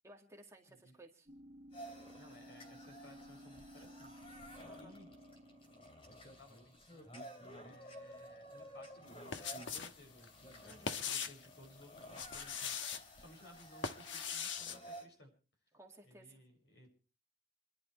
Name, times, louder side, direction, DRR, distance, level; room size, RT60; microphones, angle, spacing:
voice 1, 0.0-1.3 4.6-4.9 10.6-11.0 15.7-16.3, right 1 dB, 15° right, 1 dB, 2.1 m, -58 dB
sound 1, 1.3-6.3, equal, 35° right, 2.8 m, -56 dB
sound 2, 1.7-15.0, equal, 30° left, 2.9 m, -53 dB
voice 2, 2.1-5.1 6.2-15.3 16.0-16.9, left 1 dB, 65° left, 2 dB, 6.6 m, -60 dB
sound 3, 9.1-10.0 10.2-11.5 12.0-13.0 13.6-14.8, left 6 dB, 80° left, 1.2 m, -41 dB
29.0 x 11.5 x 3.2 m, 0.36 s
head